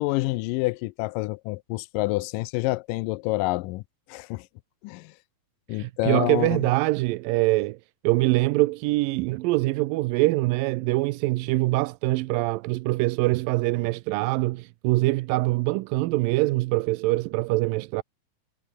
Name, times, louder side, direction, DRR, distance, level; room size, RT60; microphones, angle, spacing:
voice 1, 0.0-3.8 4.1-4.5 4.8-5.1 5.7-6.7, left 21 dB, 80° left, 2.1 m, -28 dB
voice 2, 5.7-7.8 8.0-18.0, right 20 dB, 85° right, 2.3 m, -24 dB
omnidirectional pair, 4.0 m